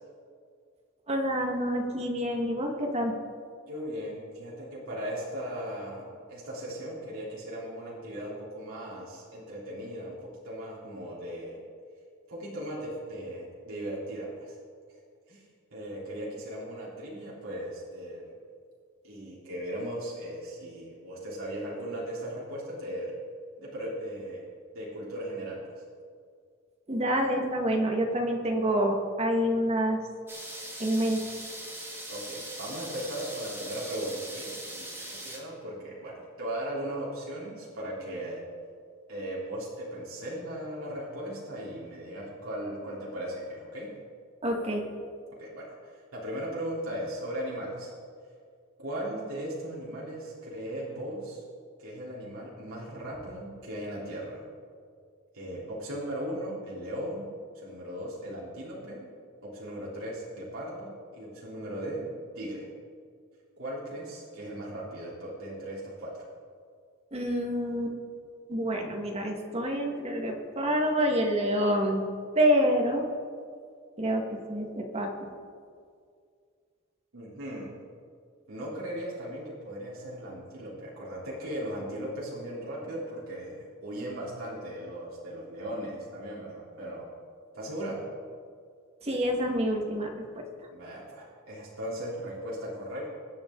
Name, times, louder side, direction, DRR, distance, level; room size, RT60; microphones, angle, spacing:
voice 1, 1.1-3.1 26.9-30.0 30.8-31.2 44.4-44.9 67.1-68.0 68.5-72.1 72.4-73.1 74.0-75.3 89.0-90.4, equal, 30° right, 1 dB, 1.8 m, -27 dB
voice 2, 3.7-11.6 12.3-14.6 15.3-15.4 15.7-18.3 19.0-23.1 23.6-24.5 24.7-25.8 32.1-38.4 39.1-43.9 45.4-47.9 48.8-51.4 51.8-54.4 55.3-57.3 57.5-59.0 59.4-62.1 62.4-62.7 63.6-66.2 77.1-77.7 78.5-87.1 87.5-88.0 90.7-93.1, right 1 dB, 80° right, -6 dB, 3.5 m, -37 dB
sound 1, 30.3-35.4, right 1 dB, 10° right, 1.9 m, -41 dB
23.0 x 8.5 x 3.9 m, 2.2 s
head